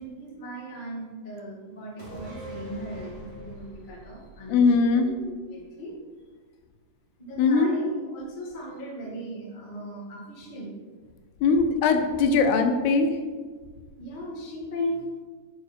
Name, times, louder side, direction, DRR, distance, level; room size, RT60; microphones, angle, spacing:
voice 1, 0.0-6.0 7.2-10.7 12.5-12.6 14.0-15.0, equal, 35° left, -3 dB, 0.8 m, -37 dB
sound 1, 2.0-5.6 5.9-6.0, equal, 25° right, 1.6 m, -43 dB
voice 2, 4.5-5.1 7.4-7.7 11.4-13.2, left 4 dB, 80° left, 6 dB, 2.7 m, -21 dB
9.9 x 8.0 x 4.5 m, 1.5 s
omnidirectional pair, 4.8 m